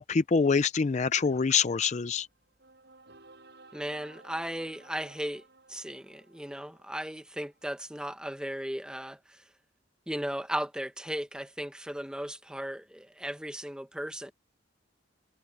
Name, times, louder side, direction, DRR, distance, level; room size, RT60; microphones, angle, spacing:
voice 1, 0.0-2.3, left 5 dB, 40° left, 0.4 m, -25 dB
sound 1, 1.9-7.8, right 3 dB, 60° right, 6.7 m, -56 dB
voice 2, 3.7-5.4 5.7-9.4 10.1-14.3, equal, 5° right, 1.3 m, -36 dB
head